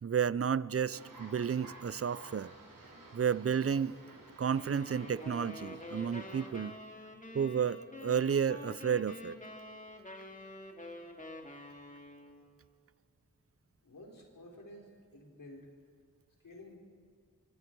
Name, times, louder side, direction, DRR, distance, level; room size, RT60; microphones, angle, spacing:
voice 1, 0.0-2.5 3.1-3.9 4.4-6.8 7.3-9.4, right 7 dB, 45° right, 18 dB, 0.6 m, -31 dB
sound 1, 0.9-6.5, right 2 dB, 85° right, 4.3 m, -53 dB
sound 2, 4.5-12.5, left 1 dB, 25° left, 2.4 m, -47 dB
voice 2, 13.8-15.7 16.4-16.8, left 1 dB, 90° left, -1 dB, 4.3 m, -52 dB
26.5 x 24.0 x 4.7 m, 2.1 s
wide cardioid pair, 65°, 32 cm